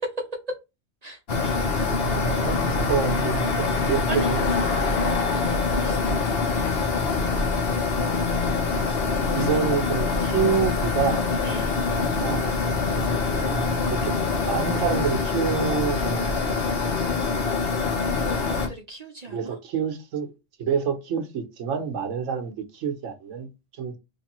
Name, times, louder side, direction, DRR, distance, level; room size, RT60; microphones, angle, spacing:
voice 1, 1.0-2.6 4.1-4.3 5.3-5.4 5.8-6.0 9.3-9.5 11.4-11.9 18.2-19.6, right 4 dB, 40° right, 0.6 m, -39 dB
sound 1, 1.3-18.7, left 4 dB, 55° left, 1.1 m, -24 dB
voice 2, 2.4-4.5 7.9-8.1 9.3-11.2 11.9-12.6 13.4-14.2 14.5-16.3 19.3-20.3 20.6-23.5 23.8-23.9, right 7 dB, 85° right, 1.1 m, -28 dB
3.3 x 3.1 x 2.9 m
omnidirectional pair, 1.3 m